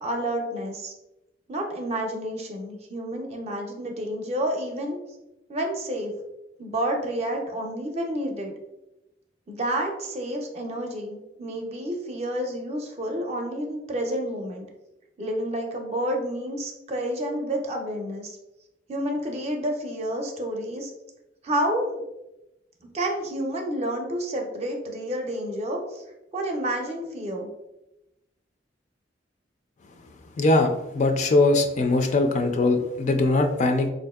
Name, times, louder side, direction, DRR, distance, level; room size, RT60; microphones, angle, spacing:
voice 1, 0.0-0.9 1.5-5.0 5.5-6.1 6.6-8.5 9.5-14.7 15.2-18.4 18.9-20.9 21.4-22.0 22.9-26.0 26.3-27.5, right 1 dB, 35° right, 2 dB, 0.6 m, -29 dB
voice 2, 30.4-33.9, left 2 dB, 40° left, 6 dB, 0.3 m, -21 dB
4.2 x 2.6 x 2.3 m, 0.94 s
head